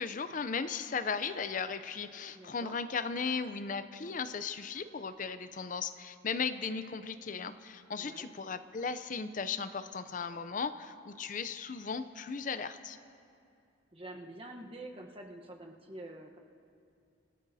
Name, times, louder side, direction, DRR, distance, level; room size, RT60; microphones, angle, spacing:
voice 1, 0.0-13.0, left 5 dB, 40° left, 11 dB, 0.5 m, -36 dB
voice 2, 2.4-2.8 8.0-8.3 13.9-16.4, right 1 dB, 30° right, 2 dB, 1.0 m, -47 dB
27.0 x 15.0 x 2.7 m, 2.5 s
head